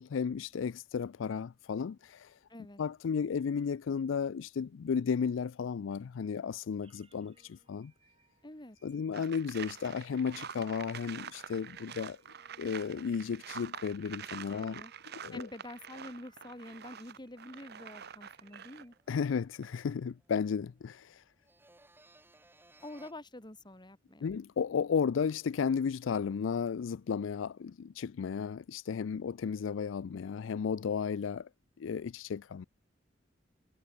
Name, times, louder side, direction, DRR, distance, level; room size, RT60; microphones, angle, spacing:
voice 1, 0.0-2.4 2.8-7.9 8.8-12.2 12.6-14.8 15.2-15.5 19.1-21.2 24.2-31.5 31.8-32.6, left 6 dB, 75° left, 0.4 m, -34 dB
voice 2, 2.5-2.8 8.4-8.8 14.5-14.9 15.3-18.9 22.8-24.3, left 1 dB, 25° left, 2.8 m, -47 dB
sound 1, 6.8-18.9, right 3 dB, 30° right, 4.7 m, -67 dB
sound 2, 9.1-19.0 19.4-19.7, right 8 dB, 55° right, 1.1 m, -46 dB
sound 3, 17.4-20.9 21.2-23.1, right 2 dB, 10° right, 1.6 m, -63 dB
head